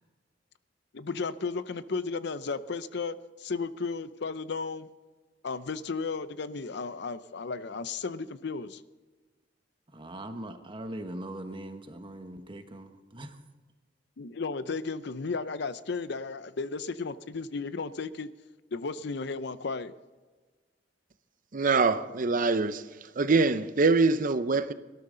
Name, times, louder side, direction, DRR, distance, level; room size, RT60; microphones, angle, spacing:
voice 1, 0.9-4.9 5.4-8.8 14.2-18.3 18.7-19.9, left 4 dB, 65° left, 0.6 m, -34 dB
voice 2, 9.9-13.4, right 1 dB, 25° right, 1.2 m, -41 dB
voice 3, 21.5-22.8 23.2-24.7, right 4 dB, 45° right, 0.6 m, -24 dB
18.5 x 12.5 x 3.9 m
head